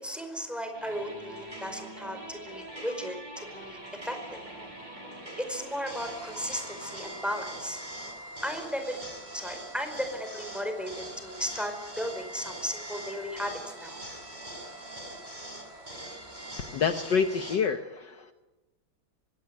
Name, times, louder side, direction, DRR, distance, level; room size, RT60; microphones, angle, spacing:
voice 1, 0.0-3.8 4.0-4.4 5.4-7.8 8.4-9.0 9.3-14.0, equal, ahead, 6 dB, 4.9 m, -35 dB
sound 1, 0.7-17.6, right 1 dB, 20° right, 6.7 m, -42 dB
voice 2, 16.6-18.3, left 6 dB, 60° left, 8 dB, 1.7 m, -28 dB
24.5 x 18.0 x 9.7 m, 1.1 s
omnidirectional pair, 2.3 m